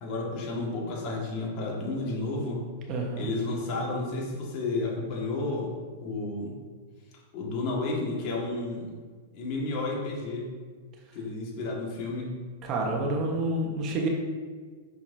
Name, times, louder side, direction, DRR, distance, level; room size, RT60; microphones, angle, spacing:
voice 1, 0.0-2.7 3.2-5.7 6.0-6.6 7.3-9.0 9.3-10.5 11.1-12.4, left 2 dB, 45° left, -2 dB, 1.8 m, -31 dB
voice 2, 2.9-3.3 12.6-14.1, right 2 dB, 40° right, 0 dB, 1.3 m, -28 dB
6.3 x 5.6 x 2.7 m, 1.5 s
hypercardioid pair, 115°, 0 cm